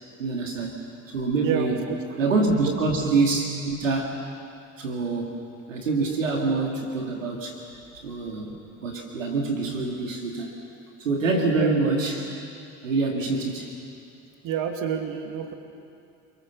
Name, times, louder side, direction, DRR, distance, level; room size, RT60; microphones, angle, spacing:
voice 1, 0.2-0.8 1.1-1.8 2.2-4.2 4.8-5.3 5.7-7.6 8.0-10.5 11.0-12.3 12.8-13.7, right 3 dB, 85° right, 1 dB, 2.5 m, -25 dB
voice 2, 1.4-2.2 2.6-2.8 11.5-11.7 14.4-15.5, right 8 dB, 55° right, 4 dB, 2.7 m, -29 dB
28.5 x 23.0 x 6.9 m, 2.5 s
hypercardioid pair, 60°, 37 cm